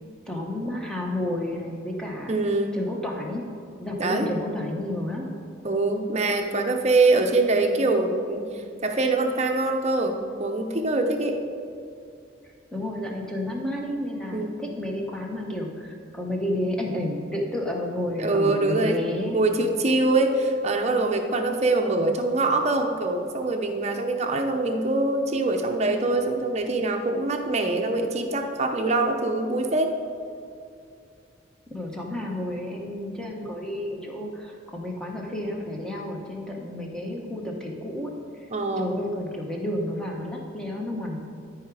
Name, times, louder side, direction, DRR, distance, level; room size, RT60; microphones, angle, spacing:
voice 1, 0.3-2.3 2.7-3.4 3.8-5.3 12.7-19.4 31.7-38.5 38.8-41.2, left 1 dB, 5° left, -1 dB, 1.0 m, -31 dB
voice 2, 2.3-2.8 4.0-4.3 5.6-8.5 8.8-11.4 14.3-14.5 18.2-19.0 19.3-29.9 38.5-38.9, right 2 dB, 35° right, 4 dB, 0.7 m, -24 dB
13.0 x 4.9 x 4.8 m, 2.5 s
head